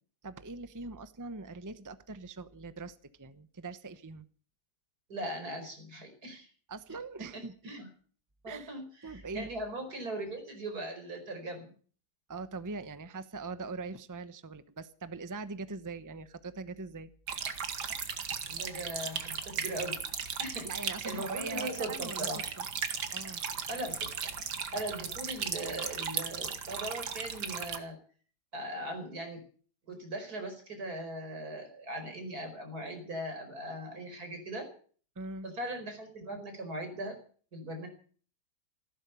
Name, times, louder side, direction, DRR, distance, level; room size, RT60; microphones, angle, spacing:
voice 1, 0.2-4.3 6.7-7.7 8.5-8.7 9.0-9.5 12.3-17.1 20.4-22.3 22.6-22.7 23.1-23.5 35.2-35.5, right 3 dB, 15° right, 12 dB, 0.8 m, -42 dB
voice 2, 5.1-6.5 7.3-7.9 8.4-11.7 18.5-20.0 20.4-22.4 23.7-24.1 24.7-28.0 28.5-29.4 29.9-34.7 35.4-37.2 37.5-37.9, right 1 dB, 65° right, 5 dB, 5.3 m, -39 dB
sound 1, 17.3-27.8, right 6 dB, 90° right, 2.1 m, -37 dB
15.5 x 12.5 x 7.0 m, 0.43 s
omnidirectional pair, 1.7 m